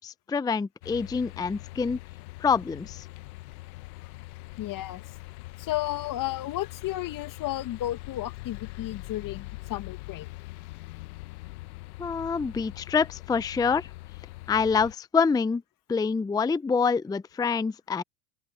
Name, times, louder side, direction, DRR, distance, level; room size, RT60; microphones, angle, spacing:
voice 1, 0.0-2.0 2.4-3.0 12.0-13.9 14.5-15.6 15.9-18.0, left 5 dB, 10° left, 0.6 m, -26 dB
sound 1, 0.8-14.9, left 21 dB, 65° left, 1.4 m, -43 dB
voice 2, 4.6-5.0 5.6-10.3, left 15 dB, 45° left, 1.9 m, -33 dB
open air
hypercardioid pair, 85°, 47 cm